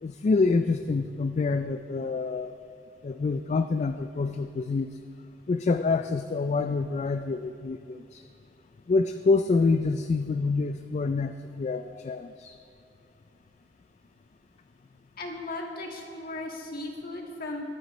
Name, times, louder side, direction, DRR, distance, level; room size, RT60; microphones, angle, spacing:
voice 1, 0.0-2.5 3.0-5.0 5.5-8.2 8.9-12.6, left 4 dB, 40° left, 9 dB, 0.3 m, -27 dB
voice 2, 15.2-17.6, left 2 dB, 55° left, 1 dB, 1.7 m, -36 dB
22.0 x 9.3 x 3.1 m, 2.6 s
head